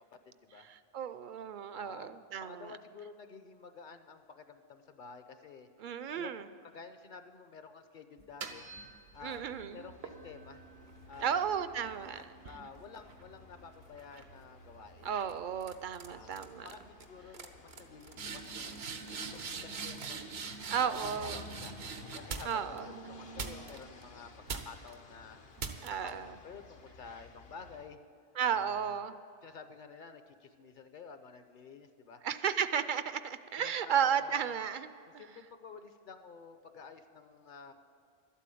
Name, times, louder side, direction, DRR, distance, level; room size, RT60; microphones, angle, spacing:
voice 1, 0.0-0.7 1.7-5.7 6.1-8.7 9.1-10.6 11.1-15.0 16.1-16.4 16.6-18.9 19.3-21.8 22.1-22.7 23.0-25.4 25.9-28.0 28.5-32.2 33.6-34.6 35.2-37.7, left 5 dB, 55° left, 9 dB, 0.9 m, -51 dB
voice 2, 0.7-2.7 5.8-6.5 9.2-9.9 11.2-12.2 15.0-16.7 20.7-21.4 22.4-22.9 25.8-26.3 28.4-29.1 32.2-34.9, right 8 dB, 60° right, 13 dB, 0.6 m, -34 dB
sound 1, 8.2-9.4 10.0-13.6 14.0-14.4 15.1-15.3 15.6-16.1 16.3-16.7 17.0-17.1 17.3-22.8 23.4-24.0 24.5-24.9 25.6-26.1, right 5 dB, 90° right, 1.2 m, -43 dB
sound 2, 9.1-27.9, left 1 dB, 70° left, 1.2 m, -54 dB
12.0 x 8.4 x 8.4 m, 2.3 s
omnidirectional pair, 1.0 m